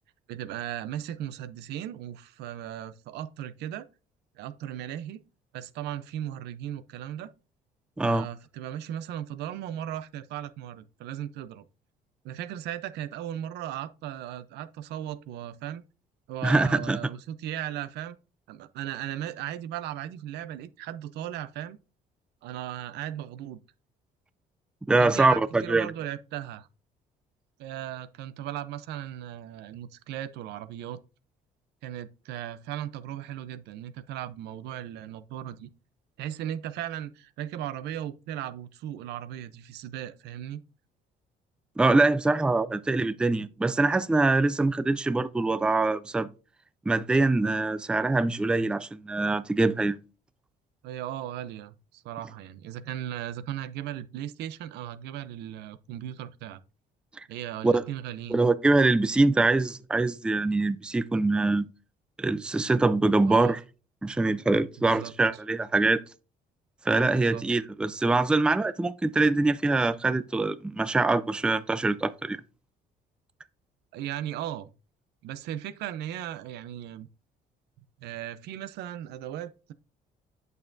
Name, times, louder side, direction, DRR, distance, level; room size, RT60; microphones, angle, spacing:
voice 1, 0.3-3.9 4.4-5.2 5.5-7.3 8.0-11.6 12.2-15.8 16.3-18.2 18.5-21.8 22.4-23.6 25.0-26.7 27.6-31.0 31.8-35.7 36.2-40.6 50.8-56.6 57.3-58.4 63.2-63.6 64.8-65.1 67.1-67.4 73.9-74.7 75.2-77.1 78.0-79.7, right 11 dB, 80° right, 0.6 m, -37 dB
voice 2, 16.4-17.0 24.9-25.9 41.8-46.3 46.9-50.0 57.6-57.8 58.3-61.7 62.2-63.6 64.0-66.0 66.9-72.4, right 3 dB, 5° right, 0.3 m, -24 dB
8.4 x 6.6 x 2.6 m
cardioid pair, 110°, 17 cm